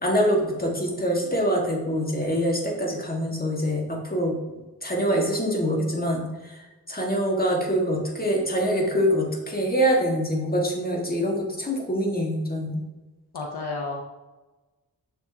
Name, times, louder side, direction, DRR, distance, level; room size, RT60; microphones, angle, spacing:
voice 1, 0.0-4.3 4.8-6.2 6.9-12.8, equal, 25° left, 0 dB, 1.8 m, -24 dB
voice 2, 13.3-14.0, left 3 dB, 85° left, -1 dB, 0.9 m, -31 dB
6.6 x 6.5 x 2.9 m, 1.1 s
cardioid pair, 55°, 38 cm